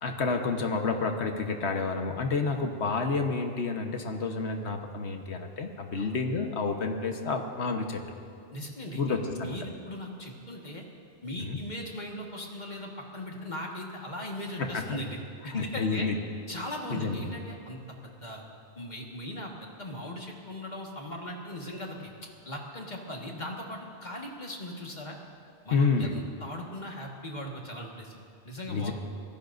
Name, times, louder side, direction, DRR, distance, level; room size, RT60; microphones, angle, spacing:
voice 1, 0.0-8.0 8.9-9.6 11.4-11.6 14.6-15.0 15.5-16.2 16.9-17.2 25.7-26.1 28.7-28.9, left 4 dB, 80° left, 4 dB, 1.4 m, -29 dB
voice 2, 8.5-10.8 11.2-15.2 15.4-16.1 16.5-18.4 18.8-25.2 25.7-28.2 28.4-28.9, left 1 dB, 40° left, 0 dB, 1.8 m, -39 dB
25.5 x 17.5 x 2.6 m, 2.4 s
omnidirectional pair, 1.1 m